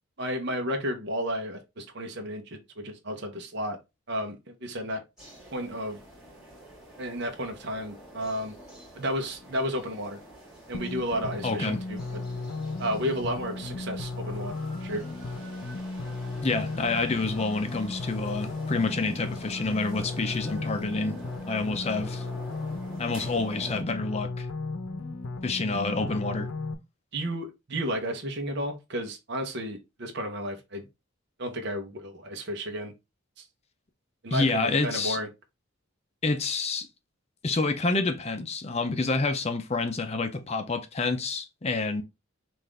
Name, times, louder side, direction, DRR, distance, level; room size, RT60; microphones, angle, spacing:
voice 1, 0.2-3.8 4.1-5.0 5.5-6.0 7.0-8.6 9.0-10.2 10.7-12.2 12.8-14.5 14.8-15.0 27.1-30.8 31.4-32.9 33.4-33.5 34.2-35.3, equal, 55° right, 0.9 m, -32 dB
sound 1, 5.2-23.8, right 1 dB, 5° right, 1.7 m, -47 dB
sound 2, 10.7-26.7, left 3 dB, 85° left, 0.8 m, -35 dB
voice 2, 11.4-11.8 16.4-21.2 21.4-22.2 23.0-24.5 25.4-26.5 34.3-35.2 36.2-36.9 37.4-42.0, left 3 dB, 30° left, 0.5 m, -28 dB
5.6 x 2.5 x 3.4 m
head